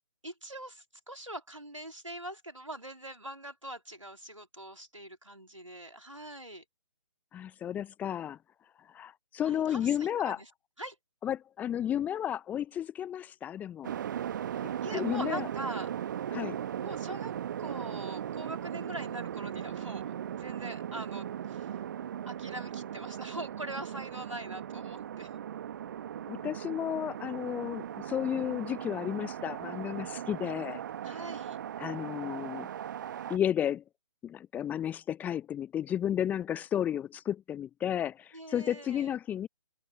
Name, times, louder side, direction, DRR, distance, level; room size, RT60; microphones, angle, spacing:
voice 1, 0.2-6.6 9.4-10.5 10.8-11.0 14.5-15.9 16.8-21.8 22.3-25.3 31.0-31.6 38.3-39.1, right 1 dB, 90° right, 4.0 m, -43 dB
voice 2, 7.3-8.4 8.9-10.4 11.2-13.9 14.9-15.5 16.3-16.6 26.3-30.8 31.8-32.7 33.3-33.8 34.2-39.5, left 10 dB, 10° left, 1.1 m, -32 dB
sound 1, 13.8-33.4, right 10 dB, 40° right, 1.6 m, -38 dB
figure-of-eight pair, 135°, 16 cm